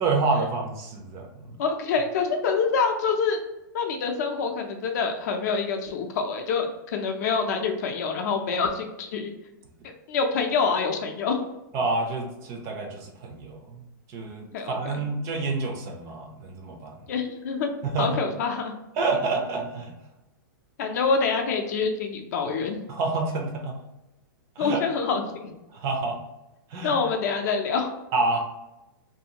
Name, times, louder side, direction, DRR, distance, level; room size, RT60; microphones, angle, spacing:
voice 1, 0.0-1.5 11.7-13.8 14.1-17.0 17.8-18.2 19.0-19.9 22.9-23.7 24.6-24.8 25.7-26.2 26.7-26.9 28.1-28.4, right 3 dB, 25° right, 2 dB, 0.4 m, -28 dB
voice 2, 1.6-3.4 3.7-9.3 10.1-11.4 14.5-14.7 17.1-17.7 18.0-18.8 20.8-22.8 24.6-25.5 26.8-27.9, left 5 dB, 50° left, 4 dB, 0.5 m, -26 dB
2.6 x 2.4 x 2.8 m, 0.95 s
hypercardioid pair, 160°, 12 cm